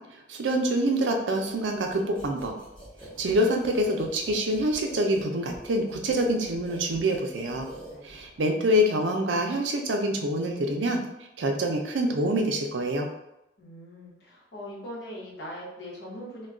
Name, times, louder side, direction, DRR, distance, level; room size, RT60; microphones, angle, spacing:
voice 1, 0.1-2.6 3.2-7.7 8.0-11.0 11.4-13.1, equal, 80° right, 3 dB, 0.5 m, -26 dB
sound 1, 1.9-8.4, right 1 dB, 5° left, 0.8 m, -45 dB
voice 2, 13.6-16.5, equal, 65° left, -4 dB, 1.0 m, -41 dB
2.3 x 2.2 x 3.6 m, 0.86 s
head